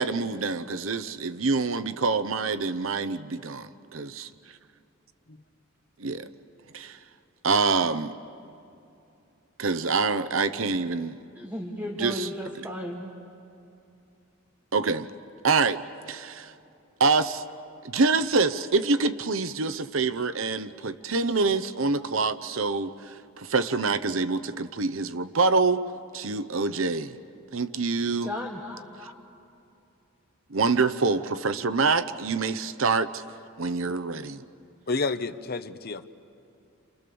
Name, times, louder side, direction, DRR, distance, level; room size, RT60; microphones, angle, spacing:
voice 1, 0.0-4.6 6.0-6.3 6.7-7.0 7.4-8.2 9.6-11.2 12.0-12.3 14.7-15.1 15.4-16.5 17.0-17.4 17.8-25.9 26.1-27.2 27.5-28.3 30.5-33.2 33.6-34.4, right 4 dB, 70° right, 13 dB, 0.8 m, -26 dB
voice 2, 11.3-13.1 28.2-29.1, left 1 dB, 10° right, -1 dB, 1.7 m, -35 dB
voice 3, 34.9-36.0, left 3 dB, 50° left, 9 dB, 0.9 m, -30 dB
29.0 x 27.5 x 7.0 m, 2.6 s
head